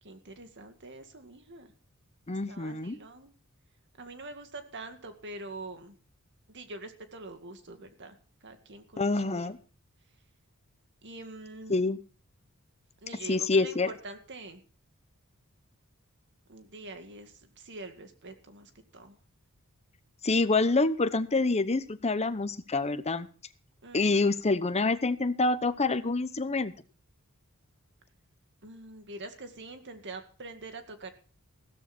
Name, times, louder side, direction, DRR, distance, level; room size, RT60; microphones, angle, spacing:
voice 1, 0.0-1.7 2.5-3.3 4.0-6.0 6.5-9.5 11.0-11.8 13.0-14.6 16.5-19.2 23.8-24.2 28.6-31.1, right 2 dB, 55° right, 7 dB, 2.1 m, -45 dB
voice 2, 2.3-3.0 9.0-9.6 11.7-12.0 13.3-13.9 20.2-23.3 23.9-26.7, left 3 dB, 30° left, 13 dB, 0.9 m, -27 dB
15.5 x 13.5 x 4.3 m, 0.38 s
head